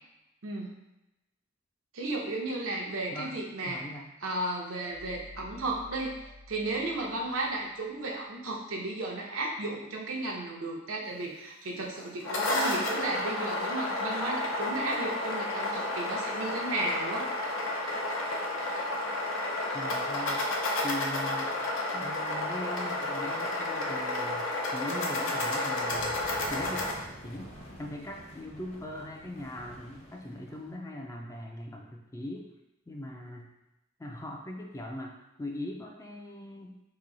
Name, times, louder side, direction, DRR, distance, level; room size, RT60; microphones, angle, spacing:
voice 1, 0.4-0.8 1.9-3.8 4.2-6.2 6.5-17.3, right 2 dB, 85° right, -1 dB, 0.8 m, -34 dB
voice 2, 3.6-4.1 19.7-20.5 20.8-21.5 21.9-26.2 26.5-26.9 27.2-27.5 27.8-32.5 32.9-33.5 34.0-36.8, left 1 dB, 15° left, 1 dB, 0.4 m, -40 dB
sound 1, 4.8-8.0, left 1 dB, 55° left, 1.0 m, -51 dB
sound 2, 12.0-26.9, left 2 dB, 75° left, 0.6 m, -31 dB
sound 3, 25.7-30.8, equal, 30° left, 0.7 m, -48 dB
3.0 x 2.7 x 3.9 m, 0.94 s
head